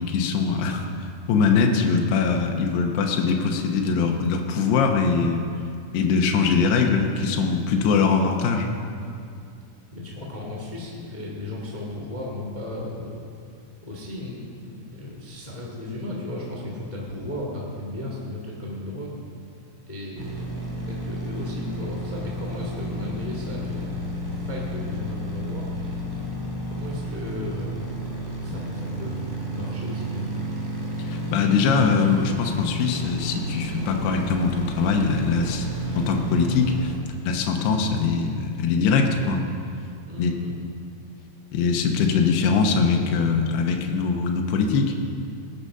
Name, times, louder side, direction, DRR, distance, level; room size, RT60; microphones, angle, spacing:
voice 1, 0.0-5.4 5.9-8.7 31.1-35.7 36.0-36.9 37.2-39.4 40.2-40.3 41.5-45.0, left 5 dB, 80° left, 2 dB, 3.1 m, -22 dB
voice 2, 9.9-13.2 13.8-19.2 19.9-25.6 26.6-30.3 40.0-40.6, left 1 dB, 45° left, -3 dB, 0.5 m, -35 dB
sound 1, 20.2-37.0, equal, 10° right, 1.5 m, -31 dB
18.5 x 8.8 x 5.5 m, 2.4 s
omnidirectional pair, 4.7 m